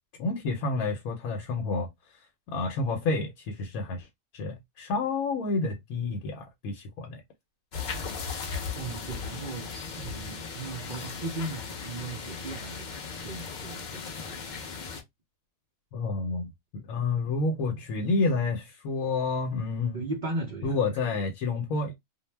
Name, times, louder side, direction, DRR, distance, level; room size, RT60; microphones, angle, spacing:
voice 1, 0.2-4.1 4.3-7.2 15.9-20.0 20.6-21.9, left 3 dB, 90° left, 1.1 m, -29 dB
sound 1, 7.7-15.0, left 5 dB, 55° left, 0.5 m, -37 dB
voice 2, 8.7-9.7 10.0-14.6 19.9-20.8 21.1-21.2, right 2 dB, 65° right, 0.4 m, -37 dB
2.4 x 2.0 x 3.1 m
omnidirectional pair, 1.5 m